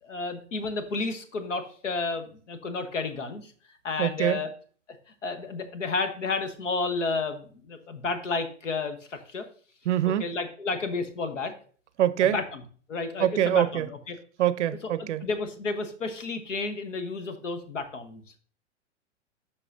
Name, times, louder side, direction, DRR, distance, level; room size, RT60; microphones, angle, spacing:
voice 1, 0.0-3.5 3.8-4.5 5.2-9.5 10.2-11.5 12.2-12.6 12.9-14.2 15.0-18.2, left 3 dB, 75° left, 1.1 m, -31 dB
voice 2, 4.0-4.4 9.9-10.3 12.0-12.4 13.2-13.9 14.4-15.2, right 11 dB, 70° right, 0.5 m, -24 dB
12.0 x 4.0 x 2.6 m
figure-of-eight pair, 105°, 37 cm